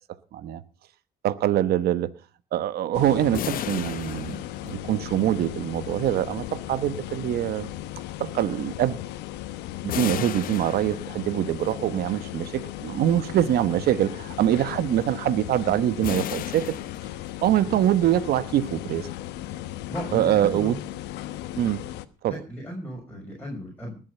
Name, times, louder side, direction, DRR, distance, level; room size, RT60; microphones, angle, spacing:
voice 1, 1.2-2.1 2.5-7.7 8.2-9.0 9.8-16.8 17.4-19.1 20.1-20.8 21.6-21.8 22.2-22.4, right 12 dB, 65° right, 1.1 m, -24 dB
sound 1, 2.9-22.0, left 14 dB, 85° left, 1.1 m, -36 dB
sound 2, 3.3-5.2 9.9-11.5 16.0-17.7, left 11 dB, 60° left, 0.8 m, -34 dB
voice 2, 19.9-20.8 22.3-24.0, equal, 10° left, 6.3 m, -36 dB
20.0 x 7.7 x 6.7 m
cardioid pair, 110°, 17 cm